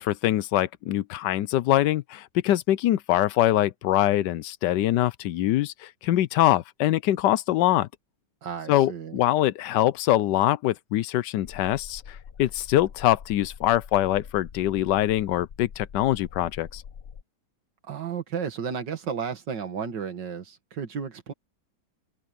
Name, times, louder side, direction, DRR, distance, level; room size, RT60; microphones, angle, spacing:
voice 1, 0.0-7.9 8.7-16.8, left 14 dB, 90° left, 1.3 m, -23 dB
voice 2, 8.4-9.2 17.9-21.3, right 7 dB, 90° right, 2.4 m, -33 dB
sound 1, 11.4-17.2, left 7 dB, 50° left, 0.9 m, -44 dB
omnidirectional pair, 1.9 m